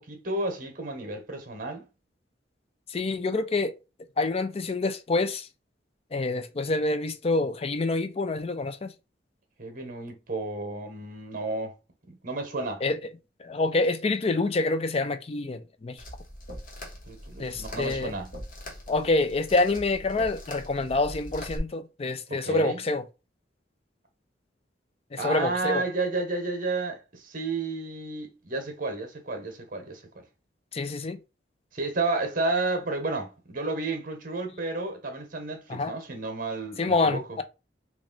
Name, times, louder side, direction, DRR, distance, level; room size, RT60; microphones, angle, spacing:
voice 1, 0.0-1.9 9.6-11.7 12.1-12.8 17.1-18.3 22.3-22.8 25.2-30.2 31.7-37.4, right 3 dB, 50° right, 1.0 m, -32 dB
voice 2, 2.9-3.7 4.2-5.5 6.1-8.9 12.8-13.0 13.4-16.0 17.4-18.1 18.9-23.0 25.2-25.8 30.7-31.2 35.7-35.9 36.8-37.4, left 2 dB, 35° left, 0.4 m, -27 dB
sound 1, 16.0-21.6, equal, 50° left, 1.2 m, -42 dB
3.0 x 2.5 x 3.8 m
head